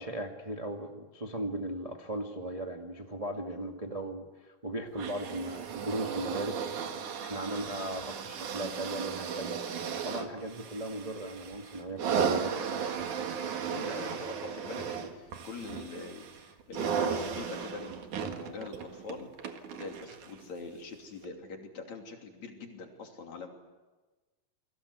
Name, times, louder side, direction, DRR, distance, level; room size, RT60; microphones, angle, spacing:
voice 1, 0.0-6.6 7.2-9.6 10.0-13.1, right 1 dB, 20° right, 2 dB, 0.9 m, -37 dB
sound 1, 4.9-20.4 21.2-21.3, right 6 dB, 60° right, 3.1 m, -35 dB
voice 2, 13.7-23.5, left 4 dB, 50° left, 2 dB, 4.2 m, -44 dB
29.5 x 22.5 x 8.1 m, 1.2 s
omnidirectional pair, 4.2 m